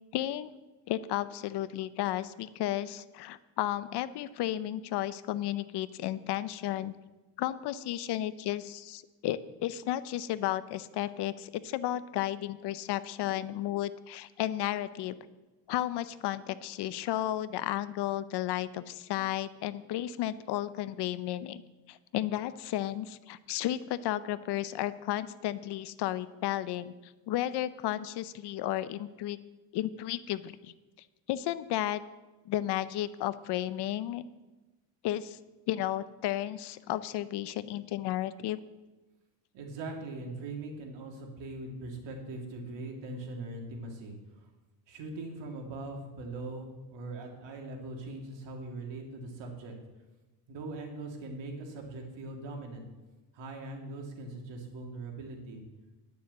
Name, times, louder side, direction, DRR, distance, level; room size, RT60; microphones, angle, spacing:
voice 1, 0.1-0.5 0.9-6.9 7.4-15.2 15.7-21.6 21.9-29.4 29.7-30.7 31.3-32.0 32.5-34.2 35.0-35.4 35.7-38.6, left 13 dB, 65° left, 15 dB, 0.7 m, -33 dB
voice 2, 39.5-44.5 44.9-49.7 50.5-52.8 53.3-55.6, right 2 dB, 75° right, 1 dB, 2.6 m, -41 dB
10.0 x 7.0 x 7.7 m, 1.1 s
cardioid pair, 110°, 44 cm